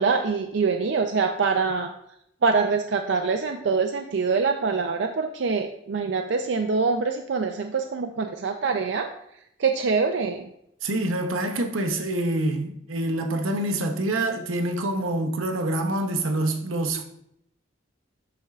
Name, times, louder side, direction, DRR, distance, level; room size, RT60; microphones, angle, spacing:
voice 1, 0.0-1.9 2.4-9.1 9.6-10.5, right 4 dB, 60° right, 0.4 m, -24 dB
voice 2, 10.8-17.0, right 1 dB, 85° right, 0.9 m, -26 dB
12.0 x 4.4 x 2.4 m
head